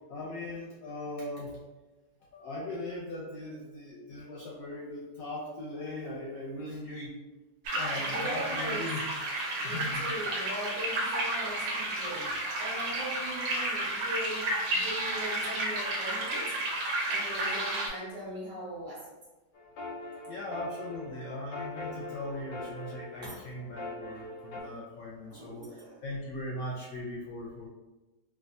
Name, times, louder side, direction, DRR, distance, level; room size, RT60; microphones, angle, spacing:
voice 1, 0.1-1.6 2.3-7.1 7.7-9.0 9.5-10.0 20.3-27.7, left 1 dB, 70° left, -4 dB, 0.9 m, -39 dB
sound 1, 7.7-17.9, right 1 dB, 90° right, 1.3 m, -32 dB
voice 2, 8.0-8.9 9.5-16.6 16.8-19.1 23.2-23.4 25.3-26.0, right 1 dB, 55° right, -6 dB, 1.1 m, -40 dB
sound 2, 19.5-24.6, left 2 dB, 90° left, 1.4 m, -42 dB
3.4 x 2.3 x 2.5 m, 1.1 s
omnidirectional pair, 1.9 m